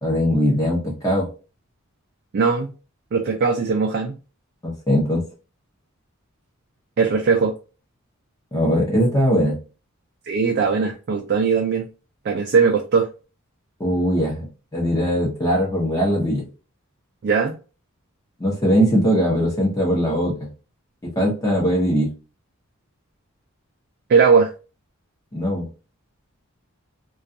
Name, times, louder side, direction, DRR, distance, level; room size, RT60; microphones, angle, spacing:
voice 1, 0.0-1.3 4.6-5.2 8.5-9.6 13.8-16.5 18.4-20.5 21.0-22.1 25.3-25.7, equal, 15° left, 0.7 m, -20 dB
voice 2, 2.3-2.7 3.1-4.2 7.0-7.5 10.3-11.9 12.3-13.1 17.2-17.6 24.1-24.5, right 5 dB, 50° right, 0.3 m, -19 dB
2.3 x 2.3 x 2.6 m
head